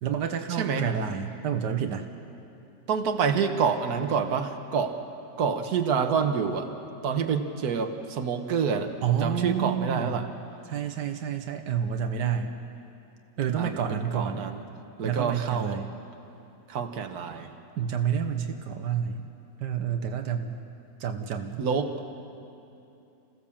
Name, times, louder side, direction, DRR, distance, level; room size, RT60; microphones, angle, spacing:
voice 1, 0.0-2.0 9.0-10.3 10.7-12.5 13.4-14.5 15.0-15.9 17.8-19.3 19.6-20.6 21.0-21.6, right 8 dB, 90° right, 6 dB, 1.6 m, -29 dB
voice 2, 0.6-0.9 2.9-5.0 5.4-6.7 7.0-10.3 13.6-14.6 15.0-15.8 16.7-17.5 21.6-21.9, right 6 dB, 65° right, 5 dB, 1.7 m, -27 dB
28.5 x 16.0 x 7.2 m, 2.8 s
omnidirectional pair, 1.8 m